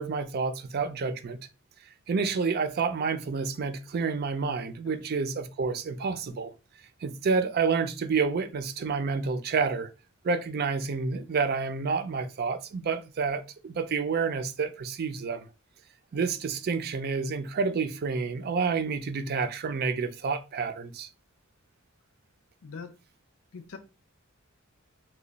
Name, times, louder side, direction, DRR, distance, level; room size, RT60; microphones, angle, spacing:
voice 1, 0.0-1.4 2.1-6.5 7.0-9.9 10.2-15.5 16.1-21.1, right 5 dB, 50° right, 0.4 m, -29 dB
voice 2, 22.6-23.0 23.5-23.8, left 5 dB, 85° left, 0.6 m, -42 dB
3.0 x 2.2 x 3.9 m
head